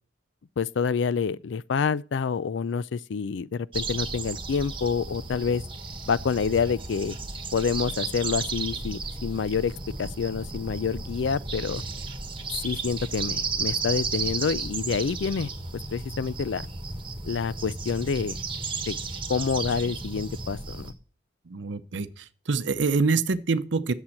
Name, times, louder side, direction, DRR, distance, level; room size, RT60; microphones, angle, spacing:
voice 1, 0.6-5.6 6.1-7.2 7.5-9.7 10.0-11.8 12.6-15.5 15.9-16.7 17.2-18.4 18.9-19.0 19.3-20.9, left 5 dB, 85° left, 0.4 m, -27 dB
sound 1, 3.7-20.9, right 4 dB, 30° right, 1.4 m, -34 dB
voice 2, 21.5-22.1 22.5-23.9, right 4 dB, 85° right, 0.7 m, -25 dB
8.7 x 7.3 x 7.7 m
head